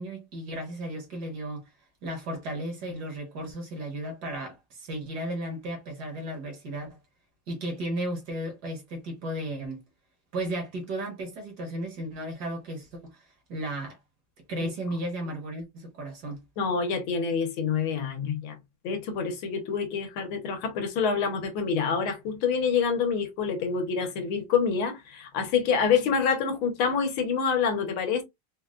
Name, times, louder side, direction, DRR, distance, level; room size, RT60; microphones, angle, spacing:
voice 1, 0.0-1.7 2.0-7.0 7.5-9.8 10.3-14.0 14.5-16.4, right 1 dB, 60° right, 1.4 m, -34 dB
voice 2, 16.6-18.5 18.8-28.2, left 6 dB, 80° left, 1.7 m, -27 dB
4.2 x 2.2 x 2.3 m
omnidirectional pair, 2.3 m